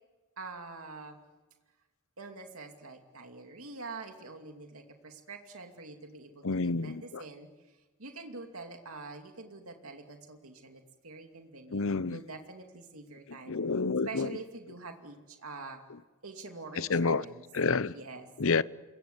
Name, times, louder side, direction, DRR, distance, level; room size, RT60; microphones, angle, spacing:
voice 1, 0.4-1.2 2.2-7.5 8.0-13.6 14.1-15.8 16.2-17.4 17.9-18.3, right 3 dB, 80° right, 2.6 m, -45 dB
voice 2, 6.4-7.2 11.7-12.2 13.5-14.3 16.8-17.2 17.5-17.9 18.4-18.6, left 4 dB, 65° left, 0.8 m, -29 dB
28.5 x 24.0 x 8.1 m
head